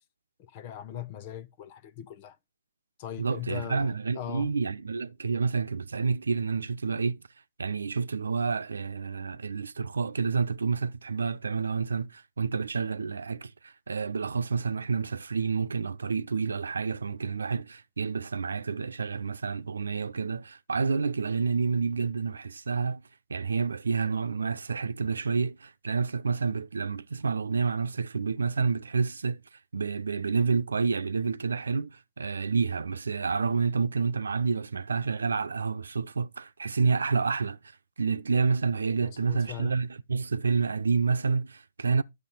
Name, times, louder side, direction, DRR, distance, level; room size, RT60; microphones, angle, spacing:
voice 1, 0.4-2.4 3.0-4.6 39.0-39.7, left 10 dB, 35° left, 0.9 m, -40 dB
voice 2, 3.2-7.2 7.6-23.0 23.3-29.4 29.7-37.6 38.0-42.0, right 5 dB, 75° right, 0.9 m, -29 dB
12.0 x 6.9 x 4.1 m
figure-of-eight pair, 135°, 0 cm